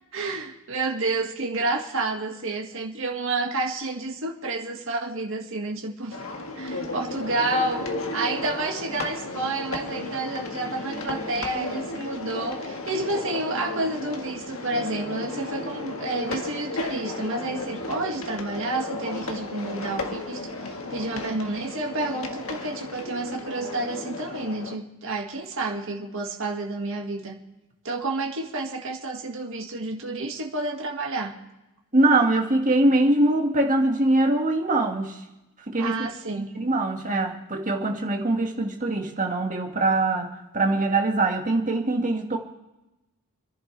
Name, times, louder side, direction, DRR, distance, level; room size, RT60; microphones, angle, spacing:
voice 1, 0.1-6.2 6.5-7.9 8.1-27.4 27.8-31.4 35.8-36.5, right 2 dB, 60° right, 1 dB, 1.9 m, -30 dB
sound 1, 6.1-24.8, left 2 dB, 65° left, 1.7 m, -34 dB
voice 2, 31.9-35.2 35.7-42.4, right 2 dB, 35° right, 2 dB, 2.0 m, -23 dB
29.0 x 11.0 x 3.4 m, 1.0 s
head